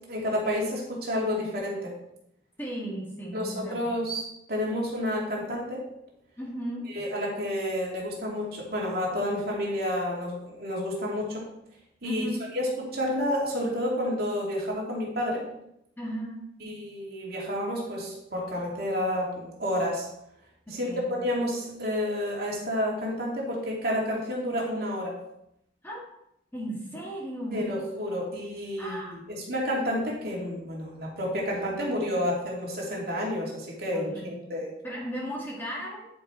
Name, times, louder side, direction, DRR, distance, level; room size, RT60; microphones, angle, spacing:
voice 1, 0.1-1.9 3.3-4.2 4.5-5.8 6.9-11.4 12.0-12.3 12.5-15.4 16.6-20.1 20.7-20.9 21.2-25.1 27.5-34.7, left 1 dB, 55° right, -3 dB, 2.8 m, -30 dB
voice 2, 2.6-4.0 6.4-6.8 12.0-12.4 16.0-16.4 20.7-21.1 25.8-26.0 26.5-27.6 28.8-29.2 33.9-34.5 34.8-36.1, right 1 dB, 10° left, -4 dB, 2.0 m, -36 dB
10.5 x 5.3 x 4.5 m, 0.79 s
head